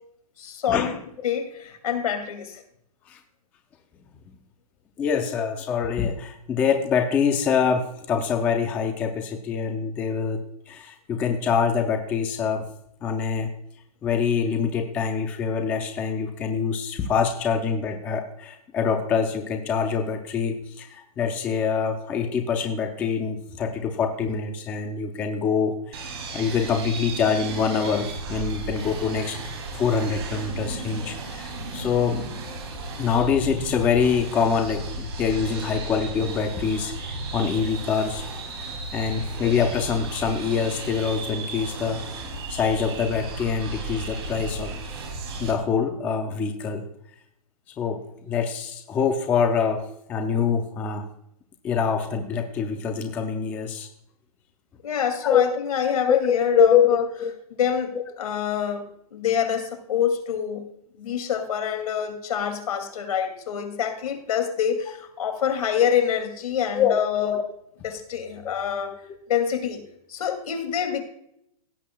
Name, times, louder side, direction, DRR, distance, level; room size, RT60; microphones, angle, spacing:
voice 1, 0.4-1.0 1.2-2.6 54.8-57.0 57.6-60.7 61.0-67.3 67.8-69.0 69.3-69.8 70.1-71.0, left 8 dB, 65° left, 7 dB, 2.4 m, -26 dB
voice 2, 5.0-10.4 10.7-12.6 13.0-13.5 14.0-29.4 29.7-32.2 33.0-38.2 38.9-42.0 42.5-44.8 45.4-46.8 47.8-51.1 51.6-53.9 55.2-55.4 56.1-57.3 66.7-67.4 69.0-69.1, left 6 dB, 10° left, 5 dB, 0.4 m, -25 dB
sound 1, 25.9-45.5, right 2 dB, 40° right, 2.9 m, -34 dB
17.0 x 8.4 x 2.2 m, 0.75 s
hypercardioid pair, 165°, 20 cm